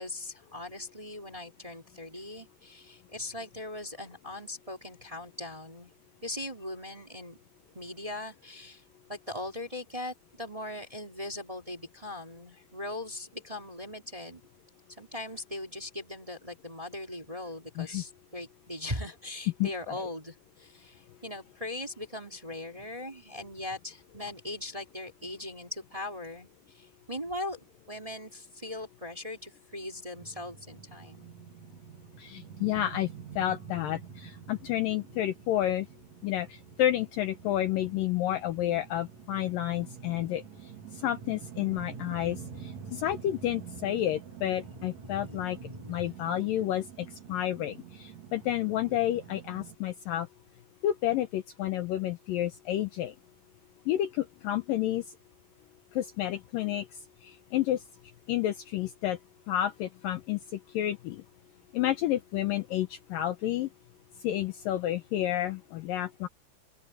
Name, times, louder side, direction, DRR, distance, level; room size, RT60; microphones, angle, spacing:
voice 1, 0.0-5.9 6.2-7.4 7.7-8.8 9.1-14.4 15.0-31.3 44.7-46.1, left 1 dB, 10° right, 2.4 m, -40 dB
sound 1, 30.2-49.8, right 8 dB, 55° right, 2.3 m, -47 dB
voice 2, 32.2-33.1 33.4-35.9 36.2-40.4 40.9-45.6 45.9-50.3 50.8-53.1 53.9-55.0 56.0-56.9 57.2-57.8 58.3-59.2 59.5-61.2 61.7-63.7 64.2-66.3, left 12 dB, 70° left, 2.2 m, -30 dB
open air
omnidirectional pair, 4.7 m